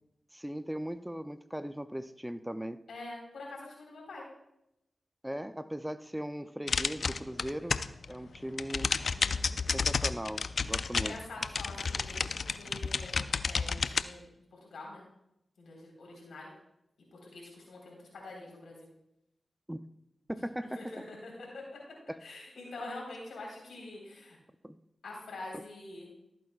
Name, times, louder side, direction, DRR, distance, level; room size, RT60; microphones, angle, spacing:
voice 1, 0.3-2.8 5.2-7.8 8.1-8.9 9.7-11.2 19.7-19.8 20.3-20.8 22.1-22.2 24.6-24.8, equal, 10° right, 12 dB, 0.5 m, -38 dB
voice 2, 2.9-4.3 9.1-9.7 10.9-15.0 15.6-16.5 17.1-18.9 20.8-21.8 22.2-24.4 25.0-26.1, left 2 dB, 85° left, -2 dB, 3.9 m, -45 dB
sound 1, 6.7-8.1 8.4-14.0, left 5 dB, 70° left, 0.3 m, -31 dB
15.0 x 8.6 x 2.4 m, 0.82 s
cardioid pair, 40°, 0 cm